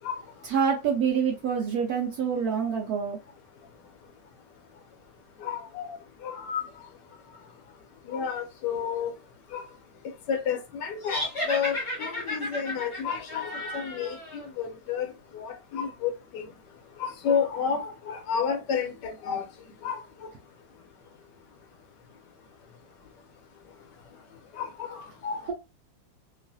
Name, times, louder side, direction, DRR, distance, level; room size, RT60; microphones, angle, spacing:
voice 1, 0.4-3.2, right 7 dB, 75° right, 0.9 m, -26 dB
voice 2, 5.4-6.7 8.1-9.1 9.5-9.6 10.3-16.5 17.0-19.5 19.8-20.3 24.5-25.4, left 7 dB, 75° left, 1.1 m, -31 dB
sound 1, 11.0-14.4, left 1 dB, 30° left, 0.5 m, -33 dB
3.0 x 2.3 x 2.5 m
omnidirectional pair, 2.0 m